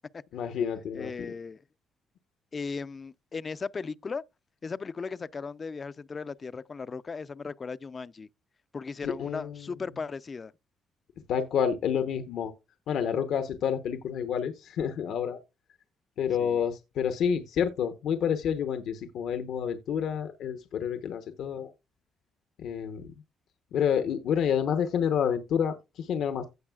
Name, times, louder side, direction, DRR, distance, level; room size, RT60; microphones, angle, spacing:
voice 1, 0.3-1.3 9.0-9.7 11.3-12.5 12.9-15.4 16.2-21.7 22.6-23.1 23.7-26.5, left 8 dB, 75° left, 0.9 m, -29 dB
voice 2, 0.9-1.6 2.5-4.2 4.6-8.3 8.7-10.5 16.4-16.6, left 4 dB, 35° left, 0.4 m, -37 dB
16.0 x 5.4 x 2.3 m
cardioid pair, 90°, 0 cm